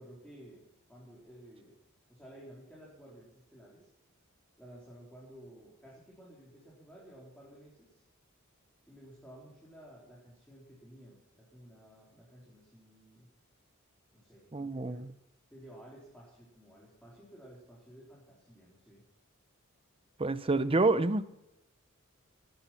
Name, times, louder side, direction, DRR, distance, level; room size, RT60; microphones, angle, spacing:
voice 1, 0.0-1.7 2.1-3.9 4.6-8.0 8.9-13.3 14.1-15.1 15.5-19.0, right 1 dB, 5° left, 4.0 m, -54 dB
voice 2, 14.5-15.1 20.2-21.3, right 3 dB, 25° right, 0.7 m, -28 dB
18.5 x 10.5 x 5.8 m
head